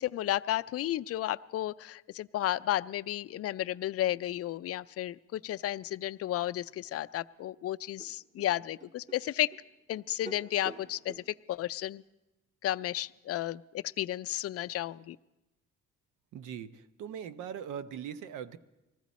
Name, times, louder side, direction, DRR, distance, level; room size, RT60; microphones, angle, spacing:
voice 1, 0.0-9.5 9.9-11.1 11.5-12.0 12.6-15.2, left 13 dB, 55° left, 13 dB, 0.4 m, -33 dB
sound 1, 7.4-7.5 8.0-11.3, right 3 dB, 25° right, 1.5 m, -49 dB
voice 2, 16.3-18.6, right 8 dB, 85° right, 14 dB, 0.7 m, -40 dB
19.5 x 14.5 x 4.1 m, 0.99 s
cardioid pair, 90°, 30 cm